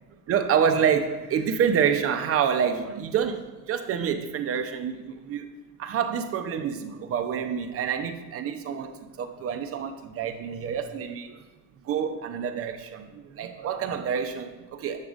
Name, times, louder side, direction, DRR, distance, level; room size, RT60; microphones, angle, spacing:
voice 1, 0.3-5.5 5.8-11.4 11.8-15.1, right 7 dB, 45° right, 8 dB, 0.6 m, -27 dB
7.2 x 6.5 x 2.4 m, 1.2 s
cardioid pair, 115°, 32 cm